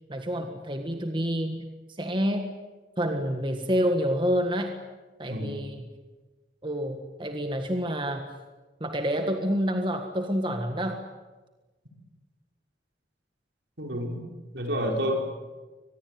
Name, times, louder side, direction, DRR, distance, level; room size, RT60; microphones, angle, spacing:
voice 1, 0.1-2.5 3.0-4.7 5.2-5.9 6.6-8.2 8.8-11.0, equal, 25° right, 5 dB, 1.7 m, -28 dB
voice 2, 5.3-5.6 13.8-14.2 14.5-15.2, equal, 75° right, 2 dB, 5.2 m, -29 dB
24.5 x 20.5 x 9.4 m, 1.2 s
head